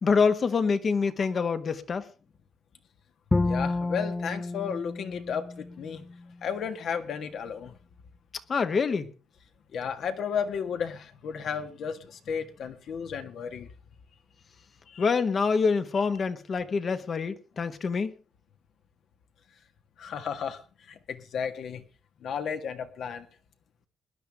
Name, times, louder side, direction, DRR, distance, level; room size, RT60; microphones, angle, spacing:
voice 1, 0.0-2.1 8.5-9.1 15.0-18.1, left 5 dB, 45° left, 1.4 m, -26 dB
Bowed string instrument, 3.3-6.4, left 3 dB, 20° left, 0.5 m, -30 dB
voice 2, 3.4-6.1 6.4-7.7 9.7-13.7 14.9-15.1 20.0-21.8 22.2-23.3, left 7 dB, 65° left, 1.7 m, -33 dB
20.5 x 10.5 x 3.5 m
cardioid pair, 90°, 0 cm